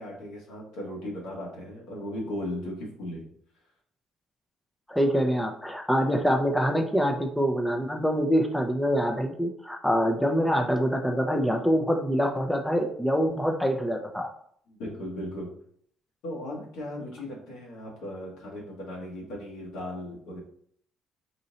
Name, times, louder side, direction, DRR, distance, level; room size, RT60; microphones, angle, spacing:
voice 1, 0.0-3.3 14.7-15.5 16.2-20.4, left 1 dB, 80° left, -3 dB, 1.8 m, -37 dB
voice 2, 4.9-14.3, equal, 5° left, 3 dB, 0.6 m, -25 dB
4.2 x 2.6 x 4.1 m, 0.62 s
supercardioid pair, 75°, 0 cm